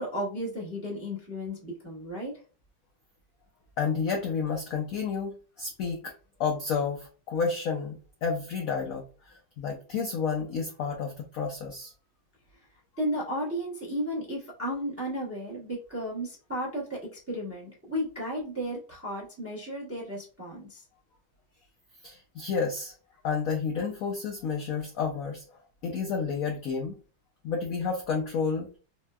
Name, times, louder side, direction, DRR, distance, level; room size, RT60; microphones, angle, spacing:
voice 1, 0.0-2.3 13.0-17.0 17.3-20.8, equal, 15° right, -3 dB, 0.5 m, -34 dB
voice 2, 3.8-6.1 6.4-9.0 9.6-11.9 22.0-22.9 23.2-25.4 25.8-26.9 27.4-28.7, left 5 dB, 85° left, 1 dB, 0.7 m, -30 dB
4.2 x 2.1 x 2.2 m, 0.36 s
omnidirectional pair, 2.0 m